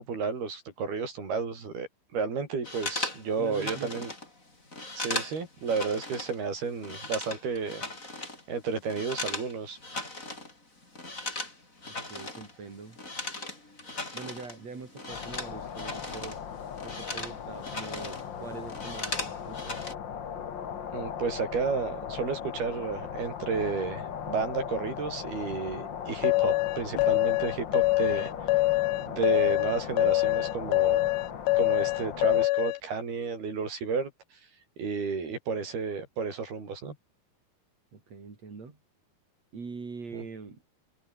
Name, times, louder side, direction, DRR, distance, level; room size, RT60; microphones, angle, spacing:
voice 1, 0.0-4.1 5.0-7.8 8.5-9.8 20.9-28.3 29.1-31.1 31.5-34.1 34.8-37.0 40.1-40.2, right 5 dB, 80° right, 8.0 m, -32 dB
sound 1, 2.6-6.4 6.6-9.5 9.8-10.5 10.8-16.4 16.7-18.3 18.6-19.9, left 2 dB, 20° left, 5.7 m, -38 dB
voice 2, 3.4-4.1 11.9-13.0 14.1-16.4 16.8-19.9 37.9-38.8 39.5-40.6, right 4 dB, 45° right, 5.9 m, -43 dB
sound 2, 15.1-32.5, left 8 dB, 55° left, 1.2 m, -38 dB
sound 3, 26.2-32.8, left 21 dB, 80° left, 2.4 m, -25 dB
omnidirectional pair, 4.4 m